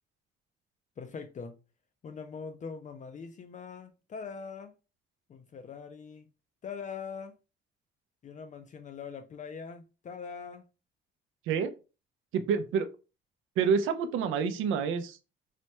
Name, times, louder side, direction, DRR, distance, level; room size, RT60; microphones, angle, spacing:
voice 1, 1.0-1.6 2.0-4.7 5.3-6.3 6.6-7.3 8.2-10.6, left 5 dB, 40° left, 0.4 m, -42 dB
voice 2, 12.3-12.9 13.6-15.2, right 6 dB, 85° right, 0.5 m, -28 dB
3.2 x 2.1 x 2.9 m
cardioid pair, 90°, 20 cm